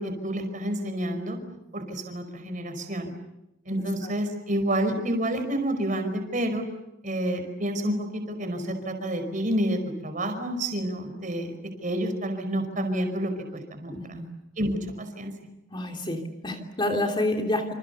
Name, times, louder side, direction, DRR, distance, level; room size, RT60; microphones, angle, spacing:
voice 1, 0.0-1.4 1.7-3.1 3.6-6.6 7.0-11.5 11.8-14.2 14.6-15.3, right 1 dB, 40° right, 6 dB, 5.1 m, -29 dB
voice 2, 3.8-4.1 13.9-14.3 15.7-17.7, left 1 dB, 25° left, 3 dB, 3.1 m, -29 dB
28.0 x 27.5 x 7.1 m, 0.91 s
head